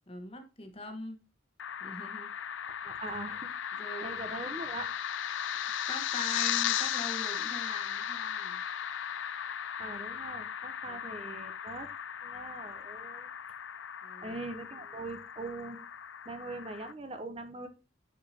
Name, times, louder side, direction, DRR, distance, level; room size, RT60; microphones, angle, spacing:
voice 1, 0.1-1.2 1.8-2.6 3.8-4.2 5.9-8.6 10.9-11.0 14.0-14.4, left 2 dB, 30° left, 1.3 m, -42 dB
sound 1, 1.6-16.9, left 9 dB, 75° left, 0.5 m, -36 dB
voice 2, 2.7-4.9 9.8-11.9 12.2-13.3 14.2-15.8 16.2-17.7, right 2 dB, 30° right, 0.7 m, -42 dB
10.5 x 4.9 x 2.8 m
head